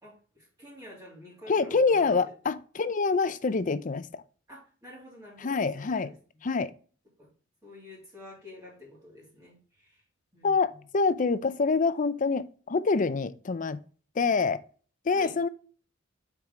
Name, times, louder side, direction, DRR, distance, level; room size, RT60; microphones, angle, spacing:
voice 1, 0.0-2.3 4.5-6.1 7.2-7.3 7.6-10.0 10.3-10.8 14.1-14.3 15.1-15.3, left 1 dB, 20° right, 2.7 m, -48 dB
voice 2, 1.5-4.2 5.4-6.1 6.4-6.7 10.4-13.8 14.2-14.6 15.1-15.5, left 4 dB, 40° left, 0.5 m, -26 dB
6.6 x 4.8 x 3.7 m
head